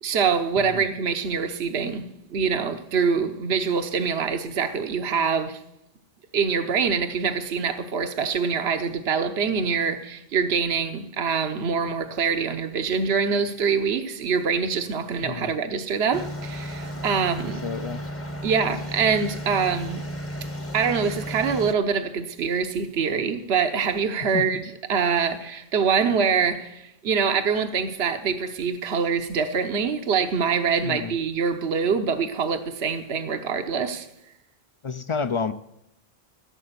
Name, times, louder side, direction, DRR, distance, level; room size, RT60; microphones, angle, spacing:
voice 1, 0.0-5.6 6.3-17.6 18.4-20.0 20.7-34.1, right 6 dB, 85° right, 1.1 m, -25 dB
voice 2, 15.2-15.5 17.6-18.0 24.3-24.4 30.9-31.1 34.8-35.5, left 5 dB, 45° left, 0.4 m, -29 dB
sound 1, 16.1-21.7, equal, 15° left, 0.8 m, -34 dB
16.0 x 7.8 x 6.8 m
omnidirectional pair, 1.1 m